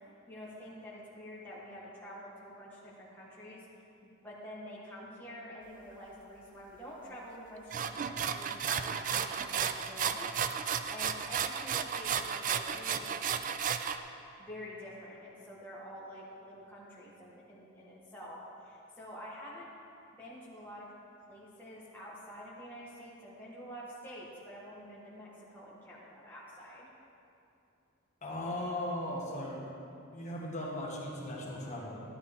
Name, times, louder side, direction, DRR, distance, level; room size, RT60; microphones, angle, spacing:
voice 1, 0.3-3.7 4.2-10.3 10.9-13.3 14.4-19.7 20.2-20.9 21.3-26.9, equal, 10° left, -8 dB, 1.2 m, -48 dB
sound 1, 7.7-14.0, right 7 dB, 40° right, 0.3 m, -33 dB
voice 2, 28.2-29.7 30.1-32.0, left 1 dB, 35° left, -3 dB, 1.6 m, -37 dB
13.0 x 11.0 x 3.5 m, 2.7 s
head